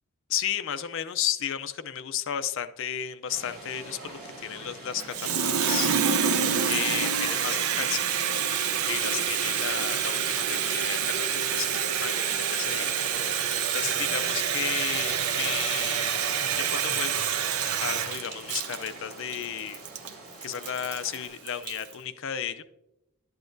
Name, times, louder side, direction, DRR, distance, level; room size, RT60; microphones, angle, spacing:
voice 1, 0.3-8.1 8.9-17.2 17.8-19.8 20.4-22.6, left 9 dB, 60° left, 11 dB, 0.5 m, -34 dB
sound 1, 3.3-21.3, right 1 dB, 45° right, 3.7 m, -43 dB
Water tap faucet, 5.0-21.9, right 7 dB, 85° right, 0.6 m, -27 dB
11.5 x 8.0 x 2.6 m, 0.89 s
head